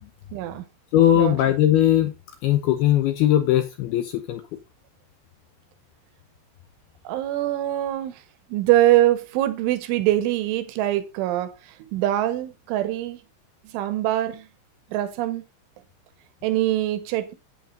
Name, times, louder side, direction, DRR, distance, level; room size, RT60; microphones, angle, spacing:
voice 1, 0.3-0.7 1.2-1.4 7.1-8.2 8.5-13.2 13.7-14.5 14.9-15.4 16.4-17.3, right 14 dB, 90° right, 3.5 m, -23 dB
voice 2, 0.9-2.1 2.4-4.4, left 12 dB, 80° left, 2.3 m, -19 dB
11.0 x 8.8 x 3.8 m
omnidirectional pair, 5.5 m